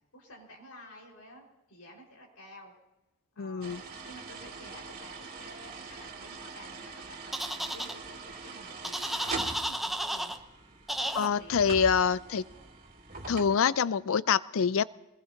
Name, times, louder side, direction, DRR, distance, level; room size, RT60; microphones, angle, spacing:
voice 1, 0.1-2.7 3.3-3.8 4.0-10.4 11.0-11.6, equal, 85° left, -2 dB, 4.9 m, -51 dB
voice 2, 3.4-3.8 11.2-12.4 13.3-14.8, left 6 dB, 65° left, 17 dB, 0.4 m, -26 dB
sound 1, 3.6-13.5, right 3 dB, 40° right, 2.4 m, -43 dB
sound 2, 7.3-7.9 8.8-10.4 10.9-11.3, right 1 dB, ahead, 0.7 m, -33 dB
24.0 x 20.5 x 2.8 m, 0.97 s
head